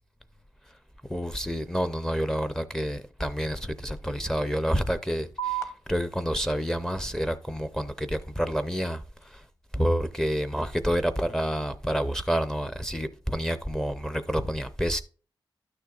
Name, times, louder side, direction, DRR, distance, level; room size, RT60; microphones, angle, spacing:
voice 1, 1.1-9.4 9.7-15.0, equal, 5° left, 0.5 m, -28 dB
sound 1, 5.4-12.4, right 10 dB, 35° left, 1.2 m, -42 dB
12.0 x 6.5 x 2.3 m
wide cardioid pair, 165°, 8 cm